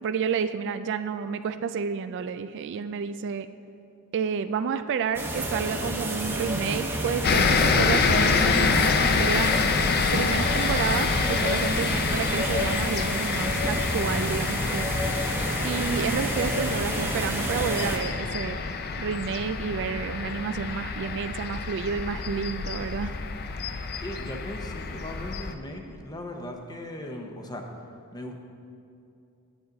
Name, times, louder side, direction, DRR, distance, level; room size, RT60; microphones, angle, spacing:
voice 1, 0.0-3.5 4.1-9.7 10.1-14.9 15.6-18.6 19.0-23.1, right 6 dB, 55° right, 11 dB, 0.3 m, -30 dB
sound 1, 5.1-18.0, right 1 dB, 10° right, 0.9 m, -30 dB
sound 2, 7.2-25.5, left 5 dB, 45° left, 0.5 m, -27 dB
voice 2, 24.0-27.6 28.1-28.3, left 1 dB, 20° left, 3 dB, 0.8 m, -38 dB
10.0 x 9.4 x 3.9 m, 2.6 s
head